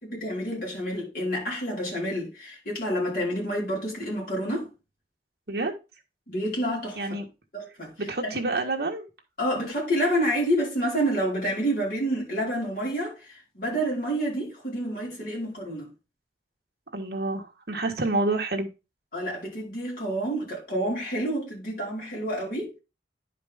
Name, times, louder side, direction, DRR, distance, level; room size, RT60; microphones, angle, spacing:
voice 1, 0.0-4.7 6.3-7.1 7.5-7.9 8.2-8.3 9.4-15.9 19.1-22.7, equal, 50° left, 4.5 m, -28 dB
voice 2, 8.1-9.1 16.9-18.7, right 2 dB, 65° right, 1.5 m, -28 dB
10.5 x 5.0 x 3.6 m
head